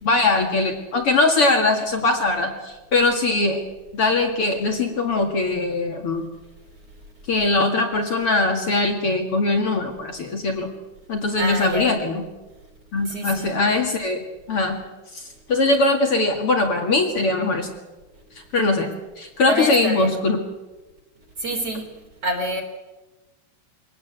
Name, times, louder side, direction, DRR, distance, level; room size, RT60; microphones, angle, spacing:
voice 1, 0.0-3.6 3.9-6.3 7.3-10.7 11.1-12.2 12.9-14.8 15.1-17.7 18.4-20.4, left 2 dB, 45° left, 3 dB, 2.1 m, -21 dB
voice 2, 11.4-11.9 13.1-13.5 19.5-20.2 21.4-21.9 22.2-22.6, equal, 35° right, 0 dB, 3.8 m, -26 dB
23.5 x 19.0 x 8.2 m, 1.1 s
omnidirectional pair, 5.1 m